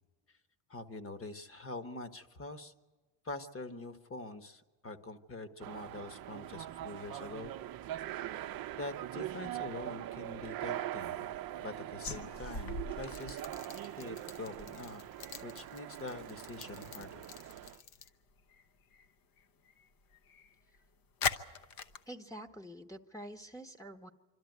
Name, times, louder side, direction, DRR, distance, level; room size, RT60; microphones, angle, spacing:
voice 1, 0.7-2.7 3.2-7.5 8.7-11.3 11.6-13.4 14.0-15.0 15.4-17.2, left 2 dB, 30° left, 11 dB, 1.5 m, -44 dB
sound 1, 5.6-17.8, right 13 dB, 50° right, 0.7 m, -42 dB
sound 2, 12.0-18.6 18.9-19.1 19.4-20.8 21.2-22.0, left 5 dB, 45° left, 1.1 m, -41 dB
sound 3, 13.1-18.1, left 9 dB, 75° left, 1.3 m, -54 dB
voice 2, 22.1-24.1, equal, 5° left, 1 dB, 1.1 m, -47 dB
25.5 x 13.0 x 9.4 m, 1.3 s
cardioid pair, 110°, 47 cm